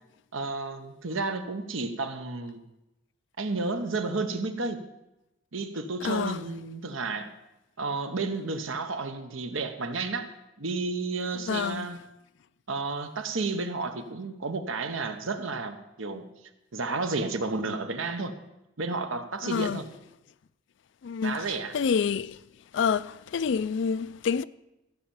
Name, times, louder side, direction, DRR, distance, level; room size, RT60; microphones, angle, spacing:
voice 1, 0.3-2.6 3.4-4.8 5.5-7.3 7.8-10.3 10.6-12.0 12.7-16.2 16.7-18.3 18.8-19.8 21.2-21.7, right 3 dB, 80° right, 1.0 m, -31 dB
voice 2, 6.0-6.4 11.5-11.9 19.4-19.8 21.0-22.4 22.7-24.4, left 6 dB, 60° left, 0.3 m, -28 dB
14.5 x 5.7 x 7.1 m
head